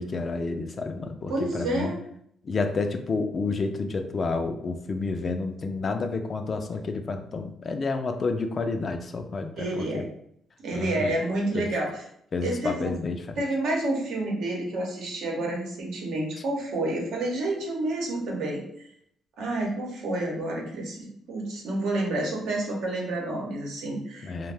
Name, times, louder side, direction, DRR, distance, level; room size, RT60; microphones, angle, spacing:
voice 1, 0.0-1.9 2.4-10.1 10.7-11.2 11.5-11.7 12.3-13.4 24.2-24.5, left 3 dB, 45° left, 6 dB, 0.3 m, -30 dB
voice 2, 1.3-2.0 9.6-10.1 10.6-12.0 12.4-12.9 13.4-18.6 19.4-24.5, right 1 dB, 80° right, -2 dB, 0.8 m, -29 dB
2.5 x 2.1 x 3.3 m, 0.70 s
cardioid pair, 90°, 0 cm